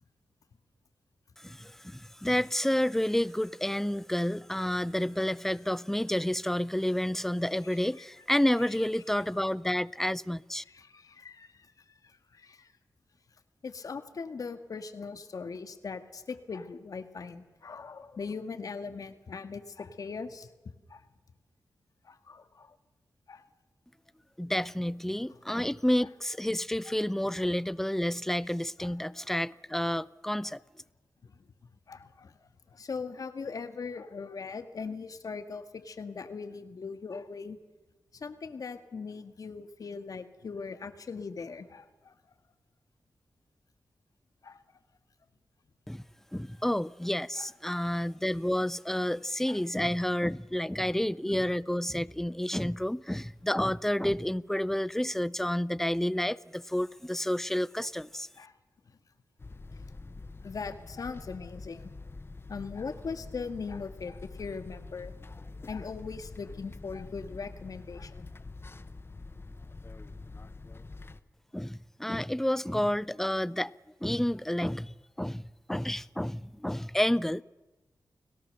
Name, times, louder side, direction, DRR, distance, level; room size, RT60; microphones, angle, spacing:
voice 1, 1.4-10.6 24.4-30.6 45.9-46.0 46.3-58.3 71.5-73.8 74.0-77.4, left 1 dB, 5° left, 0.6 m, -30 dB
voice 2, 10.7-11.7 12.3-12.7 13.6-20.5 20.9-21.0 22.1-22.7 23.3-23.4 28.8-28.9 29.2-29.3 31.2-31.3 31.9-32.4 32.7-37.6 38.1-42.1 44.4-44.6 47.4-47.5 47.7-47.8 49.5-49.6 50.8-50.9 58.4-58.5 60.4-61.9 62.5-65.1 65.7-68.3, left 5 dB, 65° left, 1.9 m, -40 dB
sound 1, 59.4-71.2, left 3 dB, 35° left, 1.2 m, -46 dB
30.0 x 17.5 x 6.8 m
cardioid pair, 60°, 7 cm